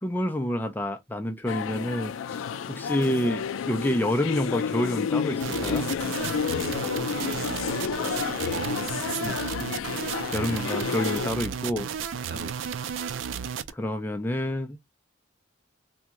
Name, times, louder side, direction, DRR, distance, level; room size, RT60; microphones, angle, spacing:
voice 1, 0.0-2.4 2.7-5.9 10.3-11.9 13.7-14.8, left 1 dB, 10° left, 0.4 m, -28 dB
sound 1, 1.5-11.3, left 6 dB, 85° left, 0.3 m, -30 dB
sound 2, 5.4-13.7, right 7 dB, 75° right, 0.4 m, -33 dB
voice 2, 7.0-7.6 8.5-9.8 12.3-13.0, right 2 dB, 50° right, 1.0 m, -40 dB
3.4 x 2.2 x 2.8 m
head